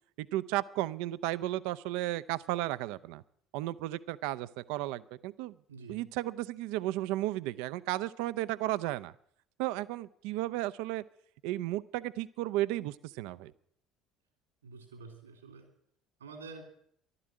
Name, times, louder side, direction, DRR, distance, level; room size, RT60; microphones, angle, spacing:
voice 1, 0.2-3.2 3.5-5.5 5.9-9.1 9.6-11.0 11.4-13.5, right 16 dB, 65° right, 16 dB, 0.5 m, -34 dB
voice 2, 5.7-6.0 14.6-15.7 16.2-16.6, right 4 dB, 80° right, 5 dB, 2.8 m, -48 dB
14.0 x 12.0 x 7.6 m, 0.66 s
figure-of-eight pair, 60°, 0 cm